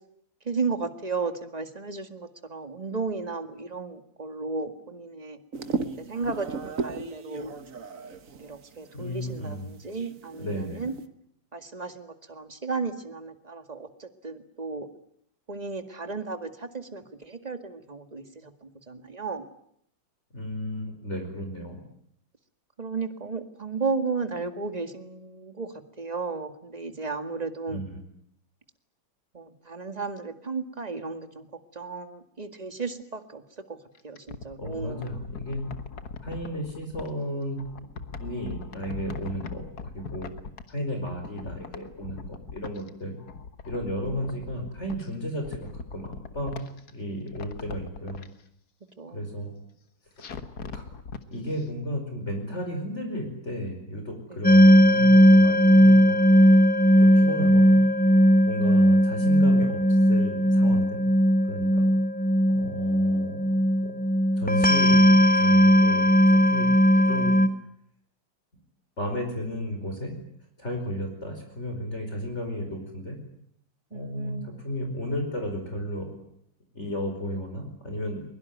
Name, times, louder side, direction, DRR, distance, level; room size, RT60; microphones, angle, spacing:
voice 1, 0.5-5.4 6.0-7.6 8.4-10.9 11.5-14.9 15.5-19.5 22.8-27.8 29.3-31.5 31.7-33.4 33.7-33.8 34.0-35.1 44.0-44.6 49.0-49.2 54.3-54.4 57.8-58.0 67.0-67.1 73.9-74.7, right 4 dB, 20° right, 9 dB, 1.9 m, -34 dB
sound 1, 5.5-8.9 9.3-9.4 9.5-11.0, right 4 dB, 45° right, 1.6 m, -36 dB
voice 2, 8.9-9.7 10.4-10.8 20.3-21.8 27.7-28.0 34.6-35.7 36.2-37.6 38.2-39.6 39.9-40.3 40.7-43.2 43.7-48.2 49.1-49.5 50.7-50.8 51.3-56.3 57.0-57.8 58.5-59.8 60.1-61.0 61.5-61.9 62.5-63.9 64.4-66.7 67.1-67.4 69.0-70.2 70.6-73.2 73.9-76.1 76.7-78.2, equal, 35° left, 3 dB, 5.2 m, -33 dB
sound 2, 33.9-37.1 37.6-40.8 41.0-42.9 43.2-45.1 45.4-46.9 47.3-48.3 50.2-51.2 51.6-51.7, left 5 dB, 55° left, 2.0 m, -40 dB
sound 3, 54.4-67.5, equal, 10° left, 0.6 m, -18 dB
22.5 x 22.5 x 9.4 m, 0.70 s
omnidirectional pair, 2.1 m